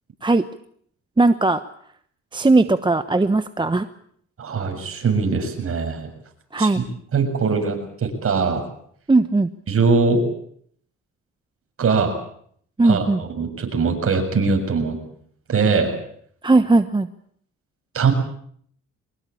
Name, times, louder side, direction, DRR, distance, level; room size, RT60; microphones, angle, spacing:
voice 1, 1.2-1.6 2.3-3.9 6.5-6.8 9.1-9.5 12.8-13.2 16.4-17.1, right 2 dB, 15° right, 11 dB, 1.1 m, -18 dB
voice 2, 4.4-6.1 6.6-6.7 7.1-8.6 9.7-10.3 11.8-12.2 12.8-15.0 15.5-16.0 17.9-18.1, right 4 dB, 45° right, 4 dB, 7.4 m, -21 dB
24.0 x 21.0 x 8.6 m, 0.64 s
cardioid pair, 90°, 30 cm